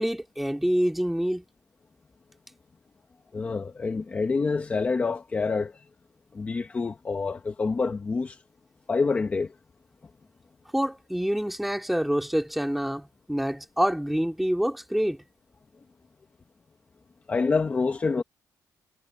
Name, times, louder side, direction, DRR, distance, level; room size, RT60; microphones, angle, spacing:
voice 1, 0.0-1.4 10.7-15.2, equal, ahead, 2.3 m, -26 dB
voice 2, 3.3-5.8 6.3-8.4 8.9-9.5 17.3-18.2, left 4 dB, 20° left, 0.9 m, -27 dB
cardioid pair, 175°, 7 cm